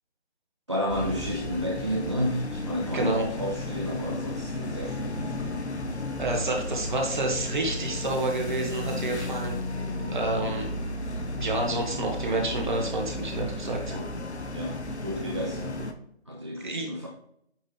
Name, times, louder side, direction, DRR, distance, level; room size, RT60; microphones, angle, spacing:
voice 1, 0.7-5.6 6.3-6.5 8.8-9.2 10.0-10.3 14.5-15.8 16.3-17.1, equal, 25° right, -1 dB, 0.6 m, -32 dB
sound 1, 0.9-15.9, left 2 dB, 80° left, 1.2 m, -34 dB
voice 2, 2.9-3.3 6.2-9.6 10.1-10.7 11.4-14.0 16.6-16.9, right 2 dB, 45° right, 1 dB, 1.8 m, -29 dB
8.9 x 4.0 x 3.5 m, 0.73 s
figure-of-eight pair, 160°, 33 cm